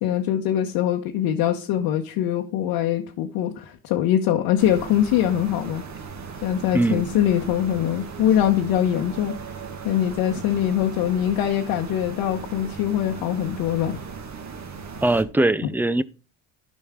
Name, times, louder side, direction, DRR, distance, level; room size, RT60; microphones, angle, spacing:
voice 1, 0.0-5.8 6.4-9.3 9.8-14.0, left 10 dB, 75° left, 1.1 m, -23 dB
sound 1, 4.6-15.2, right 5 dB, 45° right, 1.8 m, -37 dB
voice 2, 6.7-7.0 15.0-16.0, right 2 dB, 5° right, 0.4 m, -21 dB
12.0 x 5.4 x 3.6 m
supercardioid pair, 90°, 40 cm